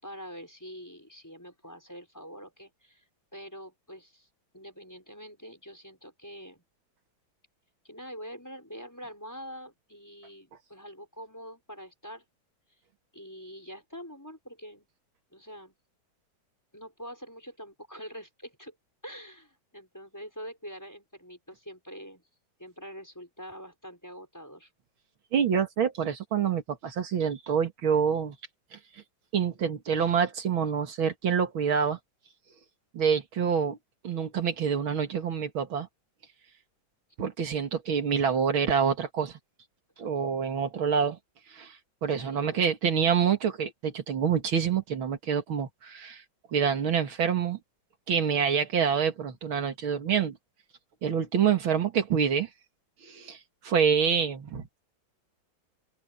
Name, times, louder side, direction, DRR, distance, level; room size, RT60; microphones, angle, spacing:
voice 1, 0.0-3.0 3.3-4.3 4.5-6.6 7.8-12.2 13.1-14.9 15.3-15.7 16.7-18.8 19.0-22.2 22.6-24.7 42.1-42.7, equal, 10° left, 5.6 m, -45 dB
voice 2, 25.3-28.4 28.7-28.8 29.3-32.0 32.9-33.8 34.0-35.9 37.2-39.4 40.0-41.2 41.5-46.2 46.5-47.6 48.1-50.4 51.0-52.5 53.0-53.4 53.6-54.8, right 7 dB, 80° right, 2.7 m, -27 dB
open air
omnidirectional pair, 2.2 m